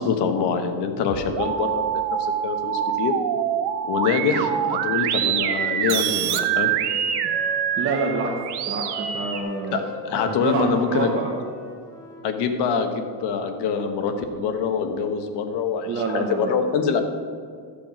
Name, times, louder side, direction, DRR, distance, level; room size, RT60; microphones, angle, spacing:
voice 1, 0.0-1.9 2.2-3.1 3.8-6.7 9.7-11.1 12.2-17.0, left 6 dB, 75° left, 6 dB, 1.2 m, -25 dB
sound 1, 1.0-9.4, right 9 dB, 70° right, 0.8 m, -25 dB
Wind instrument woodwind instrument, 5.3-8.3 8.8-12.3, equal, 5° left, 2.4 m, -40 dB
voice 2, 7.8-8.3 8.7-9.8 10.2-11.3 15.9-16.5, right 3 dB, 30° right, -3 dB, 1.1 m, -27 dB
13.5 x 6.9 x 5.0 m, 2.1 s
cardioid pair, 175°, 41 cm